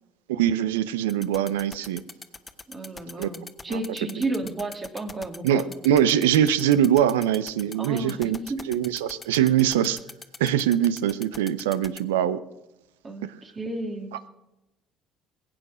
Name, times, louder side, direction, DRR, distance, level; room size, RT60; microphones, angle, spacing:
voice 1, 0.3-2.0 3.2-3.3 3.7-3.8 5.4-8.4 8.7-10.0 10.4-12.4, right 10 dB, 80° right, 17 dB, 0.7 m, -22 dB
sound 1, 1.1-12.0, left 4 dB, 25° left, 1.2 m, -40 dB
voice 2, 2.7-5.7 7.8-8.7 13.0-14.2, right 2 dB, 35° right, 4 dB, 2.7 m, -32 dB
21.0 x 8.8 x 6.2 m, 0.96 s
hypercardioid pair, 55°, 0 cm